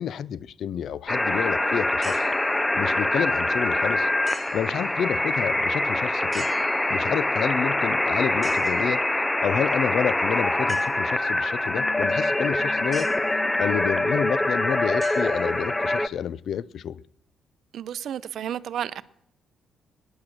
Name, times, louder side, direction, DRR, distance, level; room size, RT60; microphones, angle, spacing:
voice 1, 0.0-2.3 2.7-4.1 4.5-6.5 6.9-9.1 9.4-13.1 13.6-17.0, left 8 dB, 65° left, 0.5 m, -29 dB
sound 1, 1.1-16.1, left 1 dB, 10° left, 0.6 m, -24 dB
sound 2, 2.0-2.5 4.2-4.8 6.3-7.2 8.4-8.9 10.7-10.9 12.9-13.3 15.0-15.8, right 2 dB, 10° right, 2.9 m, -44 dB
voice 2, 17.7-19.0, right 10 dB, 70° right, 0.6 m, -32 dB
18.0 x 10.0 x 6.0 m
cardioid pair, 90°, 0 cm